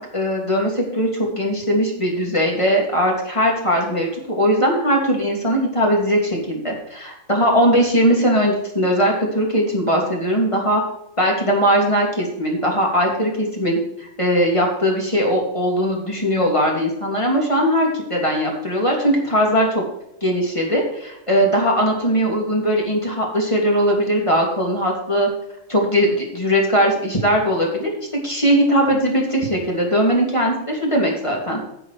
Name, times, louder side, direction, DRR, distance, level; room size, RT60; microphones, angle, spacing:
voice 1, 0.1-4.1 4.4-10.8 11.2-19.8 20.2-25.3 25.7-31.6, equal, 20° left, -1 dB, 2.9 m, -19 dB
11.5 x 6.9 x 4.8 m, 0.83 s
omnidirectional pair, 1.5 m